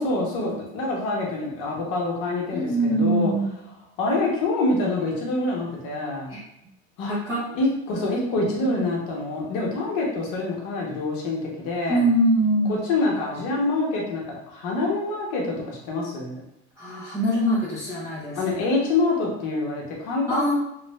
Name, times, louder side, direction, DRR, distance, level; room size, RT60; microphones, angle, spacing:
voice 1, 0.0-3.3 4.0-6.3 7.0-7.1 7.5-12.1 12.7-16.4 18.4-20.5, left 2 dB, 45° left, -2 dB, 0.9 m, -26 dB
voice 2, 2.5-3.6 6.3-6.4 7.1-7.4 11.9-12.8 16.8-18.4 20.3-20.5, right 1 dB, 10° right, -10 dB, 0.5 m, -23 dB
3.2 x 2.4 x 3.2 m, 0.82 s
cardioid pair, 175°, 35 cm